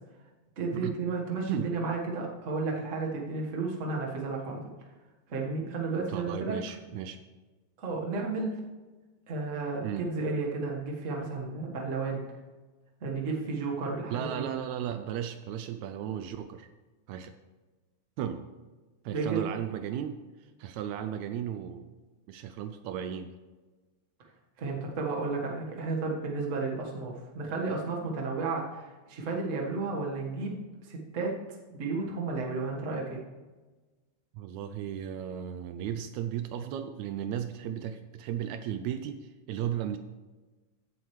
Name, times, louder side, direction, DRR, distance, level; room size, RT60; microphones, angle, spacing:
voice 1, 0.6-4.6 5.3-6.6 7.8-8.5 9.3-12.2 13.0-14.4 19.1-19.4 24.6-31.3 31.7-33.2, right 3 dB, 35° right, -1 dB, 1.3 m, -32 dB
voice 2, 6.1-7.2 9.8-10.1 14.1-16.7 17.1-17.4 18.2-18.4 19.1-22.0 22.3-23.3 34.3-40.0, right 9 dB, 80° right, 9 dB, 1.8 m, -35 dB
15.0 x 7.8 x 3.2 m, 1.2 s
omnidirectional pair, 3.3 m